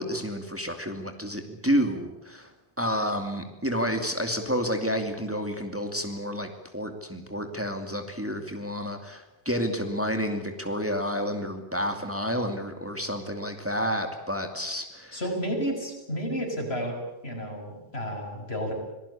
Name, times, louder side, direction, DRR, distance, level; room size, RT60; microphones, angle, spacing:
voice 1, 0.0-2.5 2.8-15.2, equal, 10° right, 5 dB, 2.5 m, -30 dB
voice 2, 15.1-17.0 17.2-18.7, equal, 75° left, 2 dB, 6.6 m, -31 dB
27.0 x 18.5 x 8.6 m, 1.0 s
omnidirectional pair, 1.1 m